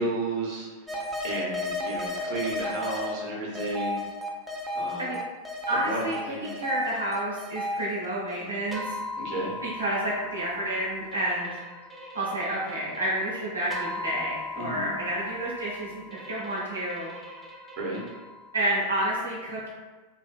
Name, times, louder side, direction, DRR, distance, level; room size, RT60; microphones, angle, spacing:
voice 1, 0.0-4.0 4.7-5.1 5.7-6.5 9.2-9.5 14.6-14.9 17.8-18.0, right 2 dB, 40° right, -4 dB, 0.8 m, -33 dB
sound 1, 0.9-3.1 3.6-18.5, left 1 dB, 5° right, 0.4 m, -36 dB
voice 2, 5.7-9.0 9.6-11.6 12.1-16.0 16.3-17.1 18.5-19.7, right 1 dB, 75° right, -6 dB, 0.6 m, -30 dB
2.5 x 2.3 x 2.4 m, 1.3 s
figure-of-eight pair, 90°, 0 cm